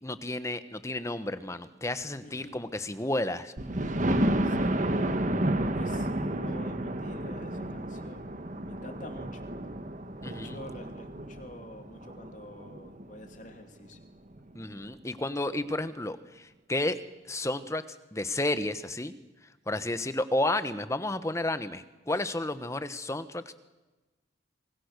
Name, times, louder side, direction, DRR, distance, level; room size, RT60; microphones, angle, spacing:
voice 1, 0.0-3.5 10.2-10.6 14.5-17.0 17.3-17.8 18.1-19.1 19.7-23.5, left 1 dB, 15° left, 12 dB, 1.1 m, -32 dB
voice 2, 2.2-2.6 4.4-5.2 5.7-8.3 8.6-9.5 10.2-14.0, left 1 dB, 45° left, 5 dB, 2.7 m, -48 dB
Thunder, 3.6-13.3 13.9-14.0 14.4-14.5 14.7-14.8, right 1 dB, 40° right, 1.6 m, -31 dB
27.0 x 22.5 x 6.7 m, 1.1 s
head